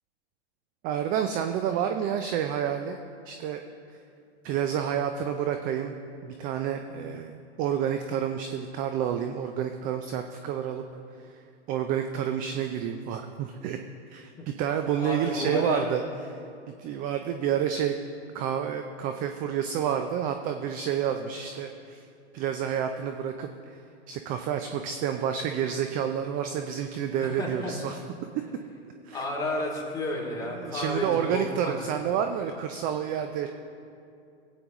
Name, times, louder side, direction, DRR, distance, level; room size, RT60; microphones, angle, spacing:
voice 1, 0.8-3.0 3.3-3.6 4.4-5.9 6.2-10.8 11.2-11.4 11.7-13.8 14.1-16.0 16.3-16.4 16.7-18.0 18.3-22.1 22.3-23.8 24.1-28.0 29.0-29.2 30.6-33.5, right 9 dB, 25° right, 6 dB, 0.4 m, -29 dB
voice 2, 15.0-15.9 27.2-27.7 29.1-31.9, left 1 dB, 10° left, -3 dB, 2.4 m, -32 dB
18.0 x 8.6 x 3.0 m, 2.5 s
hypercardioid pair, 115°, 34 cm